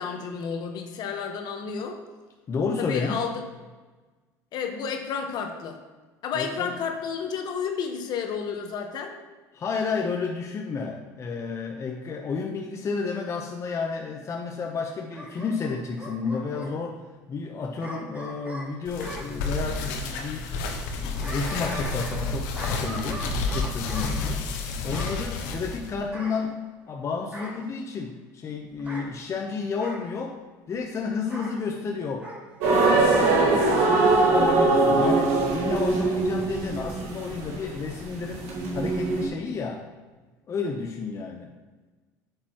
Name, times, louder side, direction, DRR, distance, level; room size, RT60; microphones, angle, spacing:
voice 1, 0.0-2.0 2.8-3.4 4.5-5.8 6.2-9.1, left 6 dB, 55° left, 5 dB, 1.2 m, -31 dB
voice 2, 2.5-3.2 6.3-6.7 9.5-17.0 17.3-20.5 21.0-24.5 24.8-30.4 30.7-32.3 32.7-38.5 38.7-39.8 40.5-41.5, left 4 dB, 35° left, 2 dB, 0.8 m, -31 dB
Bark / Growling, 15.1-16.7 17.8-19.3 20.9-22.3 22.5-24.1 24.9-25.2 26.1-26.9 27.3-27.7 28.8-29.1 29.8-30.1 31.3-31.6 32.2-32.4 33.5-34.1 34.5-34.6, right 1 dB, 15° right, 2.0 m, -40 dB
sound 1, 18.8-25.9, left 3 dB, 80° left, 1.1 m, -30 dB
sound 2, 32.6-39.3, right 3 dB, 80° right, 1.9 m, -22 dB
10.0 x 6.8 x 3.0 m, 1.3 s
supercardioid pair, 95°, 8 cm